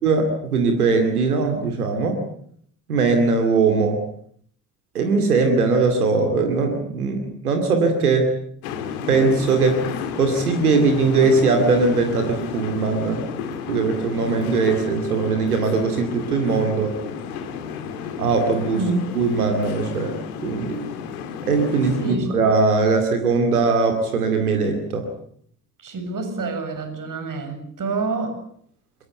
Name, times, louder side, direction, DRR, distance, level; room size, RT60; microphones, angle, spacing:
voice 1, 0.0-2.2 2.9-4.0 4.9-8.3 9.1-9.8 10.2-13.3 13.7-16.9 18.2-18.8 19.2-20.1 20.4-20.8 21.4-25.1, right 4 dB, 85° right, 5 dB, 2.5 m, -20 dB
sound 1, 8.6-22.2, left 7 dB, 75° left, 2.6 m, -32 dB
voice 2, 18.7-19.1 22.0-22.3 25.8-28.4, right 3 dB, 45° right, 7 dB, 7.5 m, -27 dB
24.0 x 22.0 x 8.2 m, 0.64 s
figure-of-eight pair, 45°, 44 cm